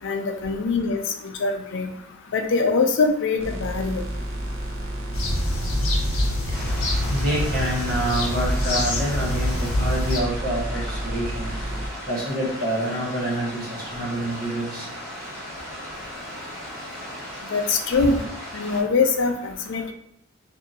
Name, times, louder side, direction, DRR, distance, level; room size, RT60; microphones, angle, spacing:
voice 1, 0.0-1.9 2.3-4.0 17.5-18.2 18.5-19.9, left 4 dB, 60° left, 5 dB, 0.4 m, -23 dB
sound 1, 3.4-11.9, right 1 dB, 80° right, 0.7 m, -31 dB
sound 2, 5.1-10.2, left 1 dB, 80° left, 0.8 m, -25 dB
sound 3, 6.5-18.8, equal, 15° right, 1.3 m, -37 dB
voice 2, 7.1-11.5 12.1-14.9, right 1 dB, 45° right, -4 dB, 1.1 m, -27 dB
2.6 x 2.6 x 4.0 m, 0.74 s
head